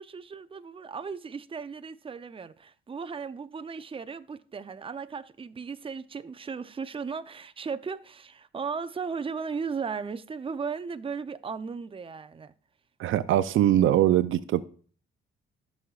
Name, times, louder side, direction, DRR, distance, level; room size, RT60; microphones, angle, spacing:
voice 1, 0.0-12.5, right 5 dB, 25° right, 0.6 m, -36 dB
voice 2, 13.0-14.6, right 12 dB, 70° right, 0.5 m, -22 dB
14.0 x 6.3 x 2.4 m
cardioid pair, 75°, 21 cm